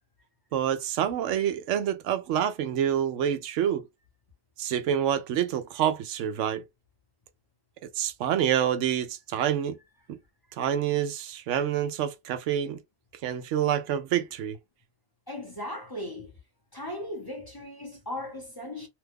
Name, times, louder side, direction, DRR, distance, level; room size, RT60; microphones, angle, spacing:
voice 1, 0.5-3.8 4.6-6.6 8.0-9.8 10.6-12.8 13.2-14.6, right 10 dB, 85° right, 0.9 m, -27 dB
voice 2, 15.3-16.3 16.7-18.9, left 1 dB, 20° left, 0.7 m, -37 dB
2.8 x 2.2 x 3.4 m
omnidirectional pair, 1.2 m